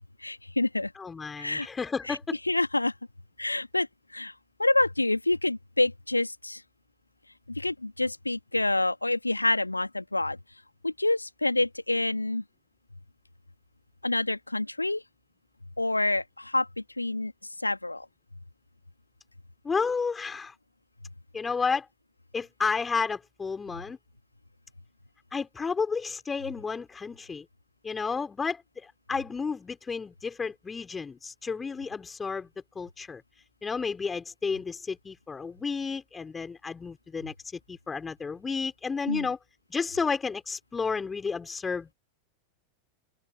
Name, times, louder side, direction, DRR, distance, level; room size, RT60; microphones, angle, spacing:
voice 1, 0.2-0.9 1.4-1.7 2.1-2.2 2.5-2.9 3.4-4.3 4.6-6.6 7.5-10.4 10.8-12.4 14.0-15.0 15.8-17.3 17.6-18.1 39.1-39.3, left 2 dB, 85° left, 2.1 m, -27 dB
voice 2, 1.0-2.4 19.6-20.6 21.3-21.9 22.3-24.0 25.3-27.5 27.8-32.5 32.8-33.2 33.6-39.4 39.7-41.9, left 5 dB, 15° left, 5.7 m, -32 dB
open air
figure-of-eight pair, 90°, 0 cm